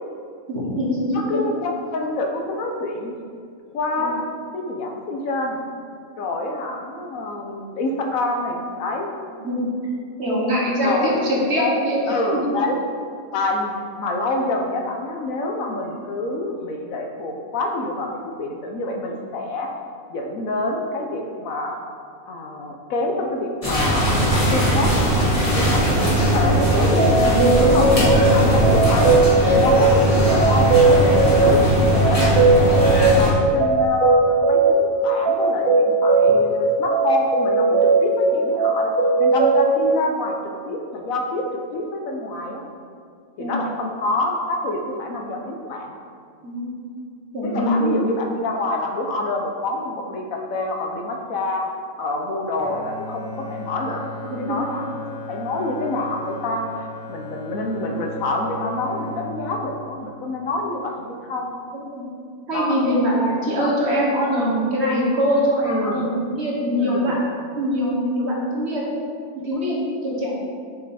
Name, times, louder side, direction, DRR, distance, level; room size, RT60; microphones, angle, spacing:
voice 1, 0.5-1.1 4.0-4.1 9.4-9.6 10.2-12.4 27.1-27.9 43.4-43.7 46.4-46.7 47.3-48.0 54.3-54.6 61.7-62.0 62.5-67.2 67.6-68.9 69.4-70.4, equal, 50° right, -3 dB, 1.5 m, -23 dB
voice 2, 1.1-3.1 3.7-5.6 6.2-9.1 10.8-12.8 13.3-18.1 18.4-19.7 20.1-21.8 22.3-24.1 24.5-26.1 26.3-26.6 27.6-29.1 29.5-31.6 32.1-38.9 39.2-40.4 40.6-41.4 41.7-42.6 43.4-45.9 47.4-51.7 52.0-56.7 57.1-61.6 62.5-62.8 63.3-63.7 65.6-66.1 66.8-67.2, left 2 dB, 75° left, 2 dB, 1.2 m, -27 dB
sound 1, 23.6-33.3, equal, 25° left, 1.6 m, -19 dB
sound 2, 26.6-39.8, right 3 dB, 75° right, 1.3 m, -18 dB
Bowed string instrument, 52.6-60.8, left 2 dB, 45° left, 0.5 m, -36 dB
6.4 x 5.3 x 4.2 m, 2.2 s
omnidirectional pair, 1.5 m